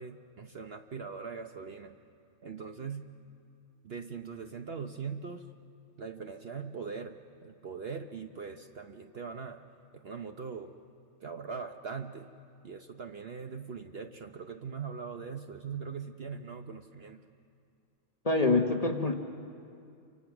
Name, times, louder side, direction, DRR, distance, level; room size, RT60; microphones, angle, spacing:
voice 1, 0.0-2.0 2.4-3.0 3.8-5.5 6.0-9.6 9.9-10.7 11.2-12.3 12.6-17.2, right 5 dB, 50° right, 6 dB, 0.9 m, -41 dB
voice 2, 18.2-19.1, left 3 dB, 30° left, 4 dB, 1.1 m, -25 dB
28.5 x 24.0 x 6.0 m, 2.4 s
omnidirectional pair, 1.5 m